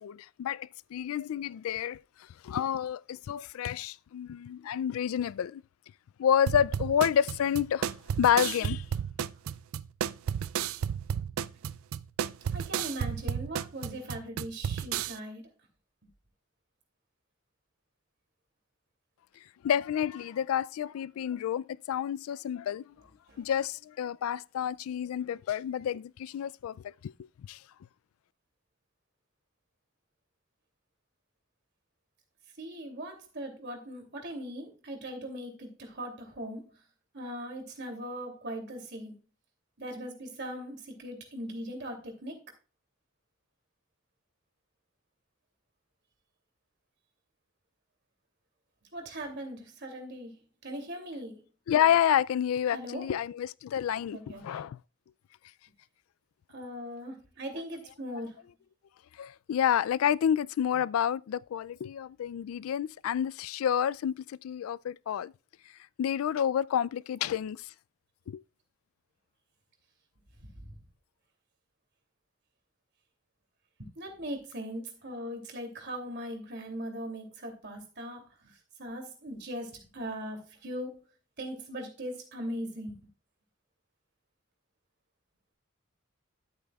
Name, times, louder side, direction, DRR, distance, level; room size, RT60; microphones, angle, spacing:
voice 1, 0.0-2.0 2.4-5.6 6.2-7.9 8.2-8.8 19.6-22.8 23.4-26.7 27.0-27.1 27.5-27.6 51.7-54.2 54.4-54.8 59.2-64.1 64.4-65.3 66.0-67.6 68.3-68.4, left 9 dB, 90° left, 0.3 m, -29 dB
sound 1, 6.5-15.2, right 8 dB, 80° right, 0.4 m, -32 dB
voice 2, 12.5-15.4 23.3-23.4 32.6-36.6 37.1-39.1 39.8-42.4 48.9-50.3 50.6-51.4 52.7-53.1 54.1-54.6 56.5-58.4 70.6-70.7 73.8-78.2 78.8-81.0 81.4-83.0, equal, 55° right, 2.7 m, -39 dB
13.0 x 8.3 x 2.3 m
head